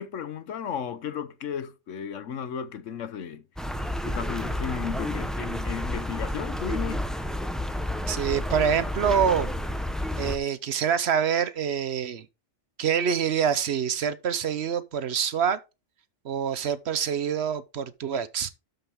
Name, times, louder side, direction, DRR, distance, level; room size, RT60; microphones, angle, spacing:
voice 1, 0.0-3.4 4.0-7.1, left 8 dB, 75° left, 1.2 m, -34 dB
sound 1, 3.6-10.4, left 1 dB, ahead, 0.7 m, -30 dB
voice 2, 8.1-9.6 10.2-12.3 12.8-15.6 16.2-18.5, right 8 dB, 60° right, 1.0 m, -26 dB
12.5 x 5.5 x 3.5 m
omnidirectional pair, 1.3 m